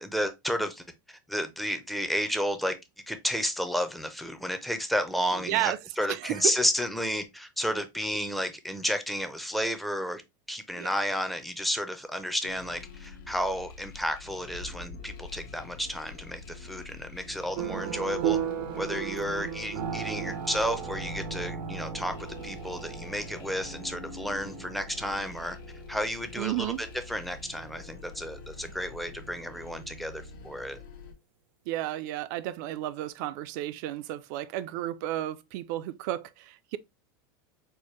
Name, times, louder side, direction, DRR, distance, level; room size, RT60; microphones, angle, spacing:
voice 1, 0.0-2.8 3.1-10.2 10.5-18.4 18.7-25.6 25.9-30.8, equal, ahead, 0.5 m, -32 dB
voice 2, 5.5-5.8 6.1-6.5 10.8-10.9 19.2-19.5 26.4-26.8 31.7-36.8, right 14 dB, 55° right, 0.4 m, -32 dB
sound 1, 12.4-31.1, left 4 dB, 75° left, 0.9 m, -45 dB
sound 2, 17.5-28.3, right 9 dB, 85° right, 0.7 m, -36 dB
4.4 x 2.1 x 3.0 m
supercardioid pair, 140°, 11 cm